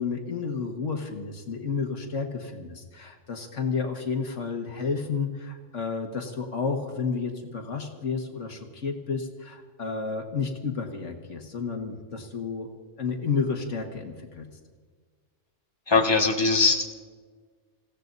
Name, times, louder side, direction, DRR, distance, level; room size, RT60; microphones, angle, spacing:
voice 1, 0.0-12.7 13.0-14.5, left 5 dB, 75° left, 3 dB, 1.9 m, -31 dB
voice 2, 15.9-16.8, left 4 dB, 20° left, 0 dB, 1.8 m, -21 dB
28.5 x 16.5 x 2.7 m, 1.5 s
omnidirectional pair, 1.3 m